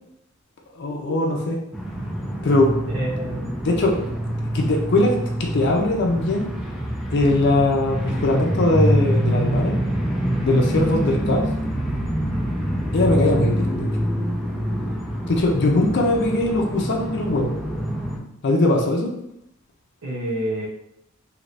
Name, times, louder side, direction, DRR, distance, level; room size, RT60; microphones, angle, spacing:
voice 1, 0.8-1.6 2.4-2.7 3.6-4.0 4.5-6.5 7.1-9.8 10.4-11.5 12.9-13.9 15.3-17.5 18.4-19.1, left 2 dB, 55° left, 1 dB, 0.5 m, -20 dB
sound 1, 1.7-18.2, equal, ahead, 0.4 m, -25 dB
voice 2, 2.9-3.6 4.0-4.1 12.3-12.6 20.0-20.7, right 1 dB, 85° right, -5 dB, 0.7 m, -29 dB
2.8 x 2.6 x 3.2 m, 0.77 s
head